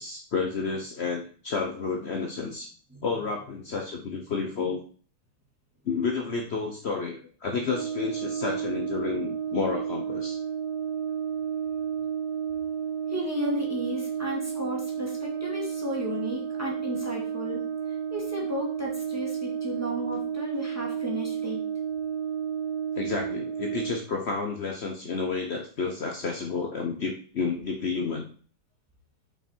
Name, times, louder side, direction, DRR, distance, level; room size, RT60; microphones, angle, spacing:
voice 1, 0.0-2.7 3.0-4.8 5.8-10.4 23.0-28.3, left 4 dB, 70° left, 2 dB, 0.6 m, -30 dB
Brass instrument, 7.7-24.1, right 8 dB, 55° right, 1.3 m, -32 dB
voice 2, 13.1-17.6 17.9-21.6, left 1 dB, 5° right, -3 dB, 2.3 m, -34 dB
6.2 x 5.8 x 4.5 m, 0.42 s
omnidirectional pair, 2.4 m